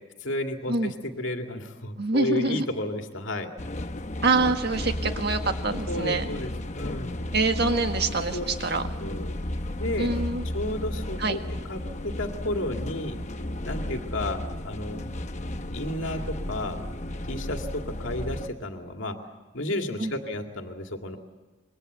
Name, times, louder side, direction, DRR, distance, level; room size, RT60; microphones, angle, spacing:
voice 1, 0.2-0.9 1.2-3.5 5.9-7.2 8.3-8.4 9.0-9.3 9.7-10.1 10.5-11.4 11.7-13.2 13.6-14.4 14.6-15.0 15.7-16.8 17.3-19.2 19.5-21.2, left 1 dB, 80° left, 4 dB, 2.3 m, -32 dB
voice 2, 2.0-2.7 4.2-6.3 7.3-8.8 10.0-10.4 11.2-11.4 20.0-20.1, right 3 dB, 55° right, 6 dB, 1.7 m, -25 dB
sound 1, 3.6-18.5, left 1 dB, 35° left, 1.0 m, -33 dB
26.0 x 22.0 x 8.1 m, 1.3 s
head